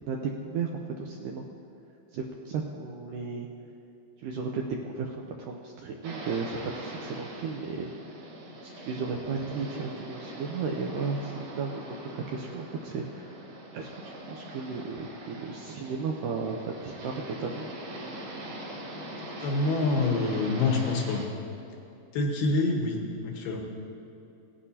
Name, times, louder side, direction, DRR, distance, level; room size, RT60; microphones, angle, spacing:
voice 1, 0.1-0.7 1.0-1.4 2.1-3.5 4.2-7.9 8.6-13.3 13.7-17.7, right 4 dB, 80° right, 1 dB, 2.0 m, -34 dB
sound 1, 6.0-21.3, right 1 dB, 65° right, 3.4 m, -42 dB
voice 2, 19.2-21.3 22.1-23.6, left 3 dB, 80° left, 1 dB, 3.1 m, -27 dB
18.0 x 9.9 x 2.8 m, 2.9 s
omnidirectional pair, 4.5 m